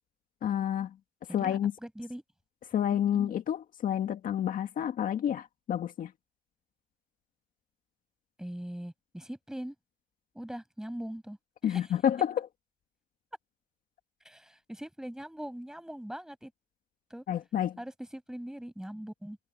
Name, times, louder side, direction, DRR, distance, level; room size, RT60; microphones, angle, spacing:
voice 1, 0.4-1.0 1.3-1.7 2.7-6.1 11.6-12.5 17.3-17.8, left 10 dB, 55° left, 1.8 m, -29 dB
voice 2, 1.3-2.2 3.1-3.3 8.4-9.7 10.3-11.4 11.7-11.9 14.2-16.5 17.1-17.2 17.8-19.4, equal, 5° right, 7.3 m, -41 dB
cardioid pair, 110°, 17 cm